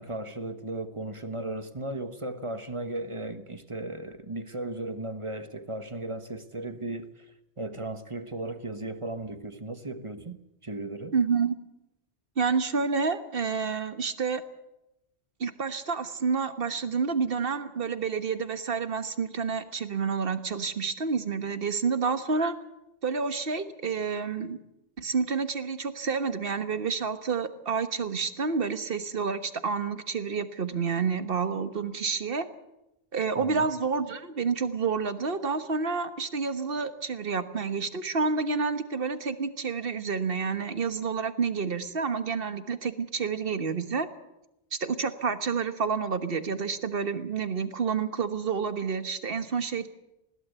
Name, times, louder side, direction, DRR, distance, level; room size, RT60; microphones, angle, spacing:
voice 1, 0.0-7.2 7.6-11.1 33.4-33.7, right 2 dB, 30° right, 1.3 m, -36 dB
voice 2, 11.1-11.6 12.4-14.4 15.4-22.6 23.0-24.6 25.0-32.5 33.1-44.1 44.7-49.9, right 5 dB, 55° right, 1.5 m, -29 dB
21.0 x 17.0 x 8.2 m
omnidirectional pair, 1.1 m